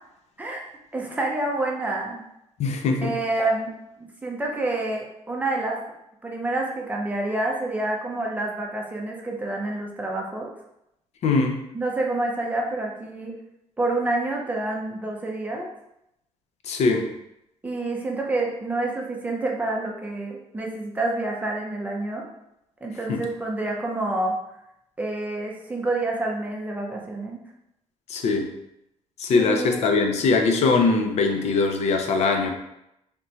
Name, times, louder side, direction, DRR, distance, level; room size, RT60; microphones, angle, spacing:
voice 1, 0.9-2.2 3.0-3.7 4.0-5.8 6.2-10.5 11.7-13.4 13.8-15.7 17.6-22.3 22.8-24.4 25.0-27.4 29.3-29.9, right 2 dB, 15° right, -1 dB, 0.6 m, -28 dB
voice 2, 2.6-3.1 11.2-11.6 16.7-17.1 23.1-23.2 28.1-28.5 29.2-32.5, left 4 dB, 65° left, 4 dB, 0.6 m, -21 dB
3.4 x 3.0 x 3.9 m, 0.82 s
cardioid pair, 160°, 12 cm